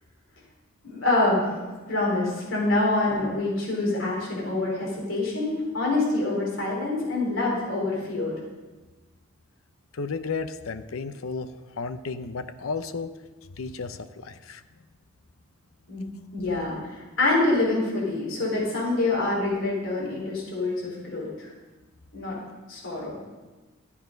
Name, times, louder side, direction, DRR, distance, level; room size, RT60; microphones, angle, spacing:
voice 1, 0.9-1.6 1.9-8.4 15.9-16.1 16.3-21.5 22.1-22.4 22.7-23.2, left 2 dB, 65° left, -4 dB, 4.2 m, -26 dB
voice 2, 9.9-13.1 13.6-14.6, left 4 dB, 85° left, 11 dB, 0.6 m, -33 dB
12.0 x 8.6 x 5.2 m, 1.2 s
head